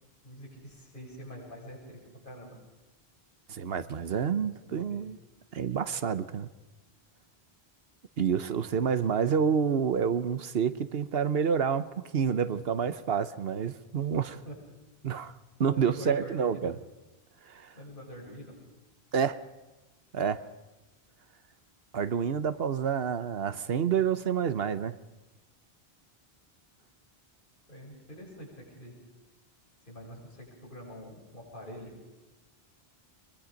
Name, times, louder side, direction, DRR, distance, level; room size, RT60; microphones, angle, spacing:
voice 1, 0.2-2.6 4.4-5.0 14.3-14.6 15.7-16.7 17.7-18.6 27.7-29.0 29.8-31.9, equal, 55° left, -3 dB, 7.7 m, -45 dB
voice 2, 3.5-5.2 5.5-6.5 8.2-11.9 12.1-14.4 15.0-15.3 15.6-16.7 17.5-17.7 19.1-19.4 20.1-20.4 21.9-24.9, right 7 dB, 70° right, 14 dB, 1.1 m, -28 dB
23.0 x 22.5 x 5.2 m, 1.1 s
omnidirectional pair, 1.0 m